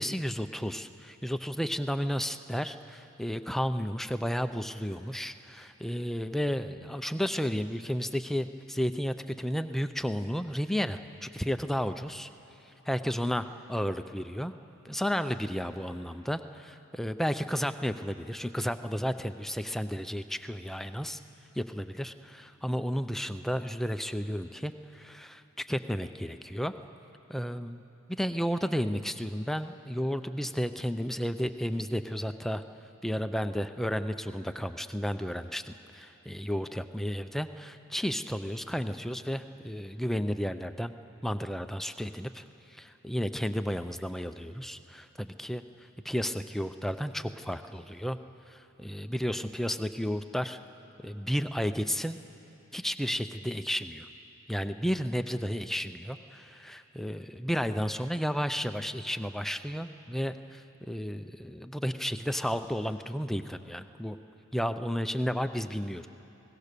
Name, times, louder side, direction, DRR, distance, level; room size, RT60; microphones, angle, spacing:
voice 1, 0.0-12.3 12.9-14.5 14.8-21.2 21.5-25.4 25.7-26.7 27.3-32.6 33.0-41.0 41.2-42.4 42.7-45.6 46.0-48.2 48.5-50.6 51.0-52.2 52.7-54.1 54.5-64.2 64.5-66.1, equal, ahead, 9 dB, 0.5 m, -32 dB
28.5 x 18.0 x 6.8 m, 3.0 s
head